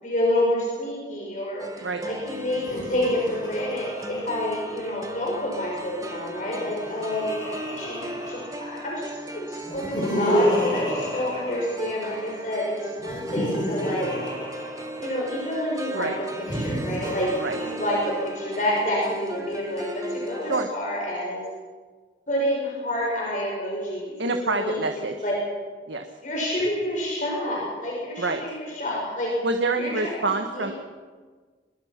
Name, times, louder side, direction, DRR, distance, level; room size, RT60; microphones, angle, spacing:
voice 1, 0.0-14.2 15.0-21.4 22.3-24.2 24.4-25.4 26.2-29.4 29.8-30.2 30.5-30.7, left 1 dB, 40° left, -3 dB, 6.1 m, -28 dB
sound 1, 1.6-20.7, right 1 dB, 20° right, 1.3 m, -37 dB
Laughter, 2.5-5.3 6.4-9.0 9.6-12.4 13.0-15.4 16.3-18.4, equal, 25° left, 6.5 m, -30 dB
voice 2, 24.2-25.1 25.9-26.0 28.2-28.4 29.4-30.7, right 3 dB, 75° right, 5 dB, 1.4 m, -26 dB
24.0 x 22.5 x 6.0 m, 1.5 s
head